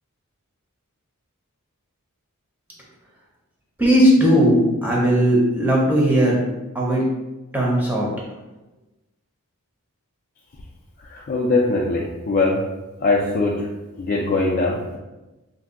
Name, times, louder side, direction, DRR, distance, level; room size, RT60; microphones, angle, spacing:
voice 1, 3.8-6.4 6.7-7.1 7.5-8.1, equal, 10° right, -4 dB, 0.6 m, -17 dB
voice 2, 11.0-12.6 13.0-13.7 14.0-15.0, left 3 dB, 40° left, -3 dB, 0.3 m, -21 dB
2.6 x 2.2 x 3.6 m, 1.1 s
head